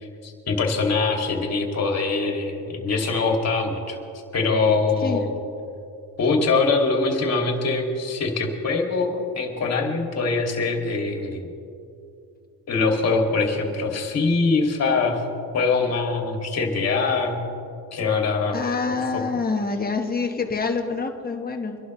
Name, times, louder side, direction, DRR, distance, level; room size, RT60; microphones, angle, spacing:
voice 1, 0.0-4.0 4.3-5.3 6.2-11.5 12.7-15.3 15.5-17.4 17.9-18.6 19.1-19.2, left 4 dB, 40° left, 1 dB, 2.5 m, -23 dB
voice 2, 18.5-21.8, left 4 dB, 20° left, 3 dB, 1.3 m, -26 dB
25.0 x 11.5 x 3.2 m, 2.6 s
cardioid pair, 125°, 41 cm